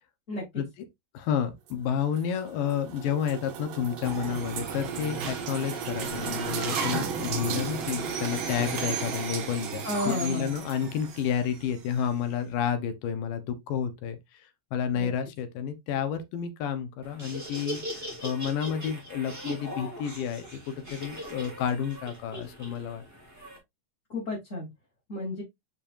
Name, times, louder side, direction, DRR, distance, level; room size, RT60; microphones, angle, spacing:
voice 1, 1.1-23.0, left 8 dB, 90° left, 2.7 m, -30 dB
sound 1, 1.7-11.3, right 8 dB, 85° right, 2.7 m, -38 dB
sound 2, 4.0-12.1, right 5 dB, 50° right, 1.6 m, -35 dB
voice 2, 9.8-10.5 14.9-15.1 24.1-24.7 25.1-25.4, left 1 dB, 25° left, 3.2 m, -31 dB
Laughter, 17.0-23.6, equal, 5° right, 2.8 m, -40 dB
6.8 x 5.7 x 2.6 m
omnidirectional pair, 3.8 m